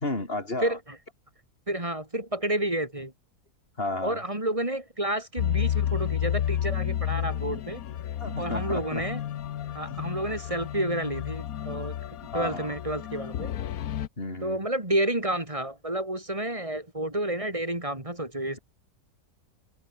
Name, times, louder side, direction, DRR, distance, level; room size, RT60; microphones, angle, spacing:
voice 1, 0.0-0.8 3.8-4.2 8.2-9.0 12.3-12.8 14.2-14.6, left 2 dB, 40° left, 4.7 m, -32 dB
voice 2, 1.7-3.1 4.0-7.8 8.4-9.2 9.7-12.0 12.3-13.5 14.4-18.6, right 1 dB, 20° right, 3.4 m, -30 dB
sound 1, 5.4-14.1, left 11 dB, 70° left, 1.3 m, -31 dB
omnidirectional pair, 1.6 m